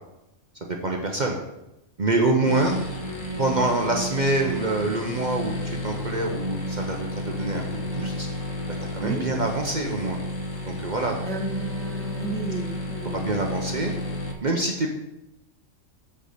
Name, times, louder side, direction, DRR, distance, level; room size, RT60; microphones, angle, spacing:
voice 1, 0.6-1.4 2.0-2.8 3.4-8.3 8.9-10.2 10.6-11.1 13.1-13.9 14.4-14.9, right 2 dB, 40° right, 1 dB, 0.9 m, -26 dB
sound 1, 2.4-14.3, equal, 85° left, 1.6 m, -32 dB
voice 2, 11.3-13.3, right 2 dB, 5° left, 0 dB, 0.9 m, -33 dB
8.0 x 4.9 x 6.6 m, 0.93 s
omnidirectional pair, 1.3 m